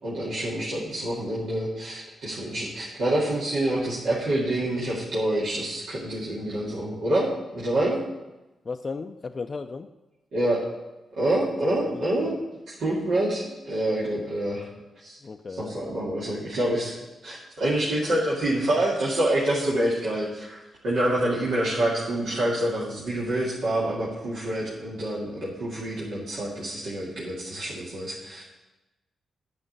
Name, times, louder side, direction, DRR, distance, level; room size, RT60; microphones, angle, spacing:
voice 1, 0.0-8.0 10.3-10.6 11.2-12.4 12.7-14.7 15.0-15.2 15.5-17.0 17.2-28.4, right 1 dB, 80° right, -8 dB, 2.2 m, -27 dB
voice 2, 8.7-9.9 12.2-12.3 15.2-15.8, left 4 dB, 45° left, 6 dB, 0.4 m, -35 dB
9.4 x 5.0 x 7.9 m, 1.0 s
supercardioid pair, 55°, 0 cm